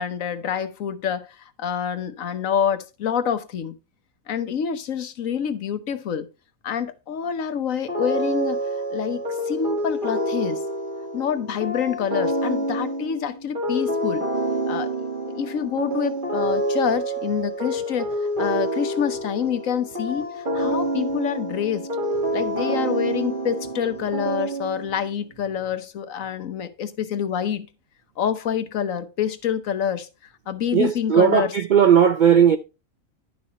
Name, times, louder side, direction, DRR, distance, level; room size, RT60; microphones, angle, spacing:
voice 1, 0.0-3.7 4.3-6.3 6.6-8.6 8.9-10.6 11.1-14.2 14.7-14.9 15.4-21.9 22.3-27.7 28.2-30.1 30.5-31.5, left 8 dB, 70° left, 1.3 m, -27 dB
sound 1, 7.9-25.1, right 1 dB, 35° right, 2.0 m, -27 dB
voice 2, 30.7-32.6, right 8 dB, 70° right, 0.4 m, -16 dB
11.0 x 6.2 x 4.1 m
omnidirectional pair, 1.5 m